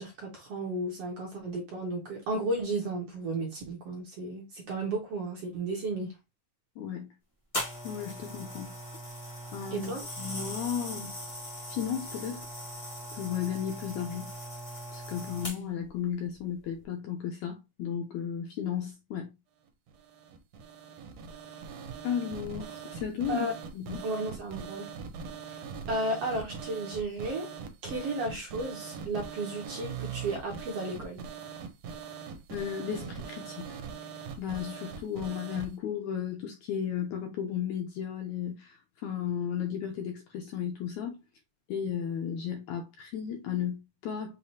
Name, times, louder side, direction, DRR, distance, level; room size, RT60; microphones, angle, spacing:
voice 1, 0.0-6.1 9.7-10.1 23.3-23.5 24.0-24.8 25.9-27.5 27.8-31.2, right 2 dB, 55° right, 1.8 m, -33 dB
voice 2, 6.8-7.1 7.8-8.7 9.5-9.9 10.2-11.1 11.7-12.4 13.1-14.3 14.9-19.3 22.0-23.5 23.7-24.0 32.5-33.8 34.4-41.2 41.7-44.4, left 8 dB, 75° left, 1.8 m, -34 dB
sound 1, 7.5-15.9 16.6-16.8, equal, 55° left, 0.4 m, -40 dB
sound 2, 19.9-35.7, right 6 dB, 85° right, 1.4 m, -42 dB
6.7 x 2.7 x 2.8 m
omnidirectional pair, 3.9 m